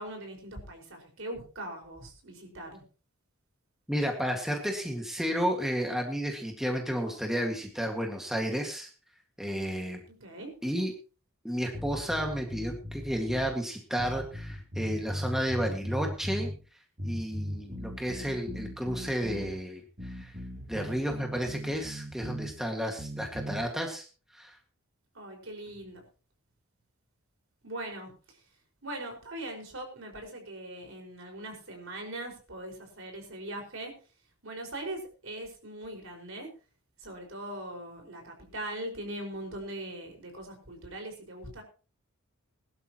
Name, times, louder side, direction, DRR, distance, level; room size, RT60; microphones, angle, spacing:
voice 1, 0.0-2.8 10.2-10.5 25.1-26.0 27.6-28.4 28.8-33.9 34.4-36.5 37.0-41.6, right 1 dB, 65° right, 2 dB, 5.1 m, -41 dB
voice 2, 3.9-8.9 9.4-10.0 10.6-10.9 11.4-16.5 17.0-20.3 20.7-24.1 24.3-24.6, equal, ahead, 2 dB, 1.8 m, -32 dB
sound 1, 11.7-13.5 14.0-16.6 17.0-19.5 20.0-22.5 23.0-23.6, equal, 35° right, 2.8 m, -38 dB
21.5 x 12.0 x 3.0 m, 0.35 s
head